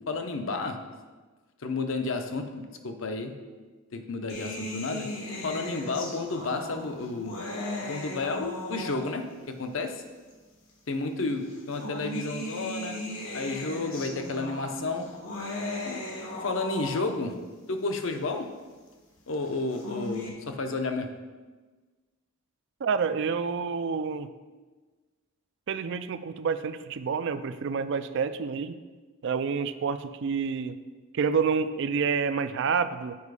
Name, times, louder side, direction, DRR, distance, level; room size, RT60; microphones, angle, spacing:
voice 1, 0.1-0.8 1.6-3.3 3.9-5.1 5.4-7.4 7.8-10.0 10.9-13.0 13.3-15.0 15.8-16.0 16.4-17.3 17.7-18.5 19.3-21.1, left 3 dB, 65° left, 6 dB, 0.7 m, -31 dB
sound 1, 4.3-9.4 10.3-10.4 11.5-17.4 19.5-20.3, left 1 dB, 85° left, 1.4 m, -37 dB
voice 2, 22.8-24.3 25.7-28.8 29.2-30.8 31.1-33.2, right 5 dB, 60° right, 12 dB, 0.4 m, -28 dB
7.1 x 4.9 x 4.8 m, 1.3 s
head